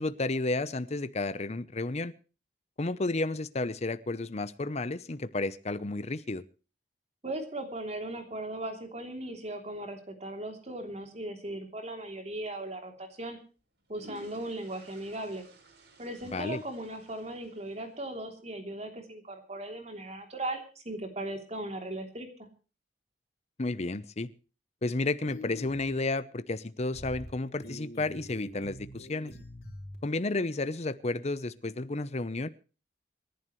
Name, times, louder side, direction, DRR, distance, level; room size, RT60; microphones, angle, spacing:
voice 1, 0.0-2.1 2.8-6.4 16.3-16.6 23.6-24.3 24.8-29.3 30.0-32.5, left 2 dB, 40° left, 0.8 m, -32 dB
voice 2, 7.2-13.4 13.9-15.5 16.0-22.3, right 1 dB, 40° right, 3.2 m, -38 dB
sound 1, 12.2-12.4 13.6-18.2, equal, 75° right, 5.0 m, -55 dB
sound 2, 25.3-25.9 26.9-27.3 27.6-29.9, left 1 dB, 65° left, 5.0 m, -45 dB
28.0 x 11.0 x 3.2 m
head